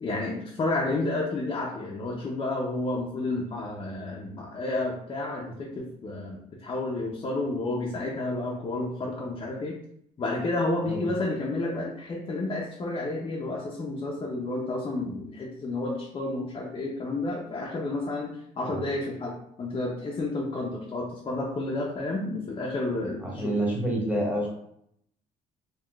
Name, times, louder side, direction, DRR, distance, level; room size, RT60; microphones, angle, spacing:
voice 1, 0.0-9.8 10.2-23.5, left 2 dB, 30° left, -3 dB, 0.5 m, -31 dB
voice 2, 23.2-24.5, right 1 dB, 10° right, -3 dB, 0.9 m, -28 dB
3.7 x 2.2 x 2.2 m, 0.73 s
cardioid pair, 110°, 17 cm